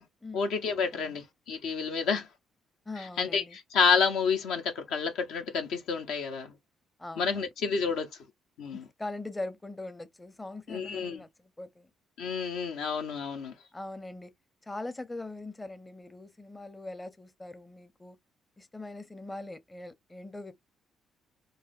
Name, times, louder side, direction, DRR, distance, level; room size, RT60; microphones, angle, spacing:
voice 1, 0.3-2.3 3.0-6.5 7.2-8.1 8.6-8.8 10.7-11.2 12.2-13.5, left 5 dB, 65° left, 0.6 m, -29 dB
voice 2, 2.9-3.6 7.0-7.4 8.7-11.9 13.7-14.3 14.6-18.2 18.6-20.5, left 2 dB, 20° left, 0.6 m, -41 dB
4.0 x 2.5 x 2.4 m
figure-of-eight pair, 45°, 0 cm